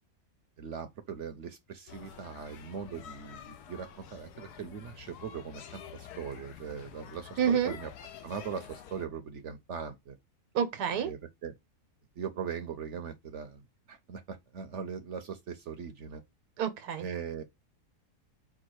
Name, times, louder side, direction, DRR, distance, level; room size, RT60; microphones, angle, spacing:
voice 1, 0.6-7.9 8.2-10.2 10.9-11.5 12.2-16.2 17.0-17.4, right 7 dB, 60° right, 0.8 m, -40 dB
sound 1, 1.9-9.1, left 8 dB, 85° left, 1.2 m, -48 dB
voice 2, 7.4-7.7 10.5-11.1 16.6-17.1, right 8 dB, 90° right, 1.4 m, -28 dB
4.7 x 2.3 x 4.6 m
omnidirectional pair, 1.6 m